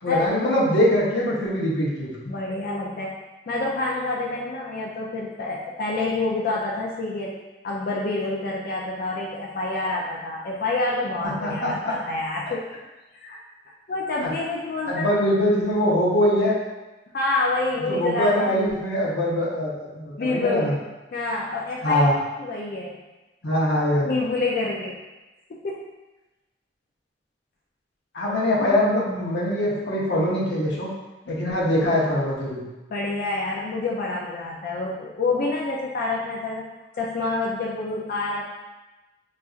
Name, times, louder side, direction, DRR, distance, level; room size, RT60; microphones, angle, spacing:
voice 1, 0.0-2.1 11.4-11.9 14.2-14.3 14.9-16.6 17.8-20.7 21.8-22.1 23.4-24.2 28.1-30.9 31.3-32.6, left 1 dB, 80° left, -5 dB, 0.8 m, -22 dB
voice 2, 2.3-3.2 3.5-7.3 7.6-12.7 13.1-13.4 13.9-15.1 17.1-18.5 20.2-20.8 21.1-22.1 22.4-23.0 24.0-25.0 25.6-25.8 32.9-36.7 36.9-38.4, left 2 dB, 55° left, -3 dB, 0.4 m, -27 dB
4.0 x 2.5 x 2.4 m, 1.1 s
head